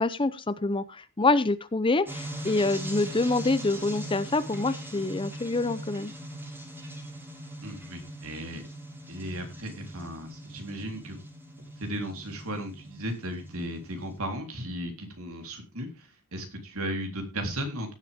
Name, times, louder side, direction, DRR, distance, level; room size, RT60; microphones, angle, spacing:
voice 1, 0.0-6.1, left 3 dB, 25° left, 15 dB, 0.6 m, -26 dB
sound 1, 2.1-14.2, right 1 dB, 10° right, 2.8 m, -41 dB
voice 2, 7.6-8.6 9.1-11.2 11.8-17.9, equal, 70° right, 4 dB, 3.8 m, -36 dB
16.5 x 7.5 x 3.6 m, 0.29 s
head